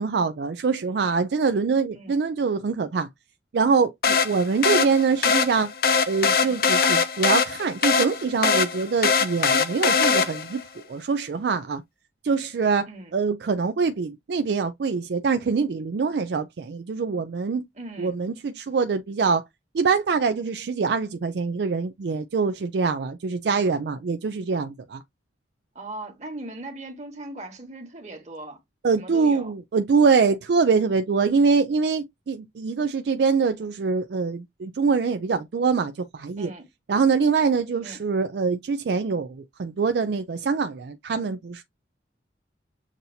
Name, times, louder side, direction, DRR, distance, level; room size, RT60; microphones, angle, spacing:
voice 1, 0.0-3.1 3.5-5.7 6.1-11.8 12.2-12.9 13.1-17.6 18.0-19.4 19.7-25.0 28.8-36.5 36.9-41.6, right 5 dB, 65° right, 0.4 m, -24 dB
sound 1, 4.0-10.6, left 5 dB, 55° left, 0.6 m, -22 dB
voice 2, 17.7-18.1 25.7-28.6 28.9-29.5 36.4-36.7 37.8-38.0, right 2 dB, 40° right, 1.5 m, -39 dB
7.3 x 2.7 x 2.7 m
head